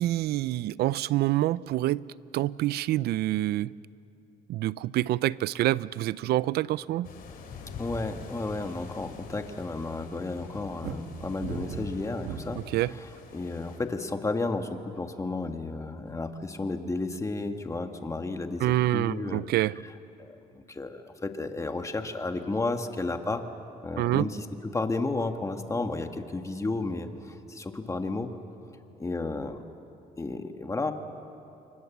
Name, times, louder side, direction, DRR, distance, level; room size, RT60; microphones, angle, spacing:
voice 1, 0.0-2.0 2.3-3.8 4.5-7.1 12.5-12.9 18.6-19.8 24.0-24.3, right 15 dB, 70° right, 20 dB, 0.5 m, -27 dB
sound 1, 7.0-13.8, left 4 dB, 60° left, 4.6 m, -45 dB
voice 2, 7.8-13.1 13.3-19.4 20.2-23.4 23.8-28.3 29.0-29.6 30.2-30.9, left 3 dB, 20° left, 6 dB, 1.8 m, -32 dB
sound 2, 10.8-12.8 13.4-13.9, right 6 dB, 90° right, 2.3 m, -37 dB
30.0 x 24.5 x 7.3 m, 2.9 s
cardioid pair, 110°, 17 cm